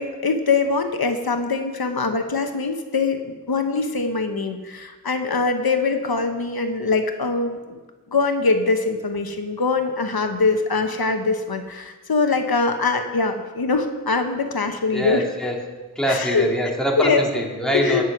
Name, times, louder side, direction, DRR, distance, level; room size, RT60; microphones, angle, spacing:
voice 1, 0.0-3.2 3.5-7.8 8.1-15.2 16.1-16.5 17.0-17.2 17.7-18.0, left 4 dB, 85° left, 6 dB, 1.0 m, -22 dB
voice 2, 14.9-15.6 16.0-18.0, equal, ahead, -1 dB, 2.5 m, -24 dB
17.0 x 6.2 x 6.1 m, 1.3 s
wide cardioid pair, 45°, 36 cm